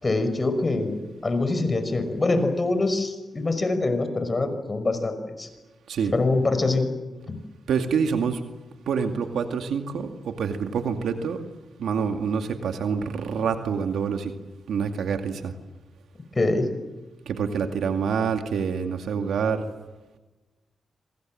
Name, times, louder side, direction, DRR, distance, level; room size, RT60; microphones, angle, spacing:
voice 1, 0.0-5.5 6.1-6.9 7.3-7.4 16.4-16.7, left 2 dB, 35° left, 9 dB, 5.7 m, -24 dB
voice 2, 7.7-8.4 8.9-11.4 11.8-14.3 14.7-15.5 17.3-19.7, right 6 dB, 85° right, 6 dB, 2.3 m, -26 dB
26.5 x 25.5 x 7.7 m, 1.2 s
cardioid pair, 60°, 0 cm